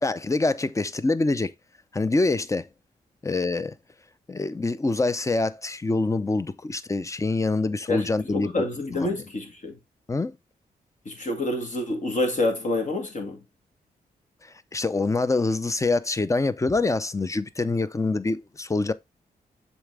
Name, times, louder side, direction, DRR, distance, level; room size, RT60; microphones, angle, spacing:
voice 1, 0.0-1.5 1.9-2.7 3.2-3.7 4.3-8.5 8.9-9.2 10.1-10.3 14.7-18.9, left 3 dB, 20° left, 0.6 m, -25 dB
voice 2, 7.9-9.8 11.1-13.4, left 2 dB, 50° left, 2.2 m, -27 dB
7.1 x 4.1 x 3.4 m
cardioid pair, 65°, 16 cm